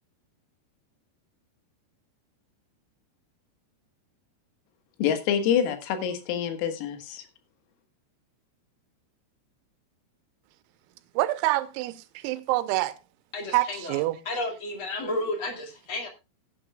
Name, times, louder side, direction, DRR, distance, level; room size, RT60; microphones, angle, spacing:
voice 1, 5.0-7.2, left 8 dB, 90° left, 4.2 m, -26 dB
voice 2, 11.2-13.0 13.5-14.2, right 17 dB, 90° right, 3.5 m, -26 dB
voice 3, 13.3-16.1, left 2 dB, 45° left, 1.8 m, -32 dB
16.0 x 10.0 x 2.3 m
omnidirectional pair, 5.9 m